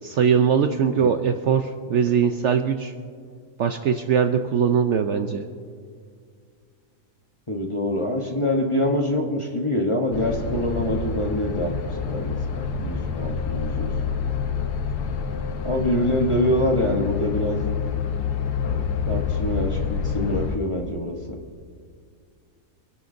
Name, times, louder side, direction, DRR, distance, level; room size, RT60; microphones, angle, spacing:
voice 1, 0.0-2.9 3.6-5.5, right 7 dB, 65° right, 7 dB, 0.7 m, -21 dB
voice 2, 7.5-11.8 12.1-13.9 15.6-17.7 19.1-21.4, left 1 dB, 25° left, 0 dB, 0.8 m, -25 dB
sound 1, 10.1-20.6, left 6 dB, 90° left, 1.4 m, -27 dB
26.5 x 11.0 x 2.6 m, 2.1 s
omnidirectional pair, 1.6 m